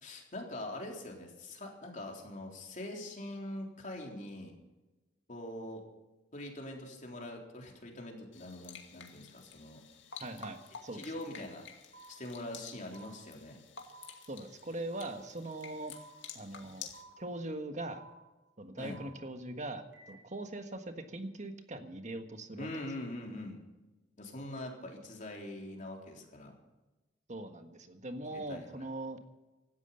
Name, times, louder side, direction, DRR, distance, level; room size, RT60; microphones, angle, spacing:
voice 1, 0.0-4.5 5.3-5.8 6.3-9.8 10.9-11.7 12.1-13.6 18.8-19.0 22.6-23.6 24.2-26.6 28.5-28.7, left 1 dB, 45° left, 1 dB, 3.7 m, -43 dB
sound 1, 8.3-17.0, left 7 dB, 90° left, 2.3 m, -51 dB
voice 2, 10.2-11.1 14.3-15.9 16.3-16.9 17.2-18.0 18.6-22.7 27.3-29.2, right 2 dB, 40° right, 7 dB, 1.6 m, -41 dB
sound 2, 11.9-12.1 12.9-13.1 13.9-14.1 14.9-15.1 15.9-16.1 16.9-17.1 17.9-18.1 18.9-19.1 19.9-20.1, right 3 dB, 75° right, 7.1 m, -53 dB
16.5 x 12.5 x 5.7 m, 1.1 s
head